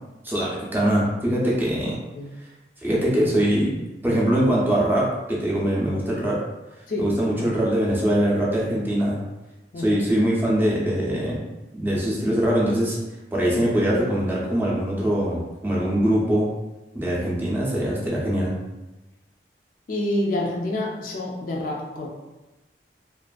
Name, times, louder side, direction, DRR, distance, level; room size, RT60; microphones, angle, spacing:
voice 1, 0.2-2.0 2.8-3.8 4.0-6.4 7.0-9.2 9.8-11.4 11.7-13.0 13.3-16.5 16.9-18.5, right 1 dB, 10° right, -5 dB, 0.5 m, -22 dB
voice 2, 9.7-10.0 19.9-22.1, left 1 dB, 50° left, -1 dB, 0.4 m, -27 dB
2.4 x 2.4 x 2.2 m, 1.1 s
head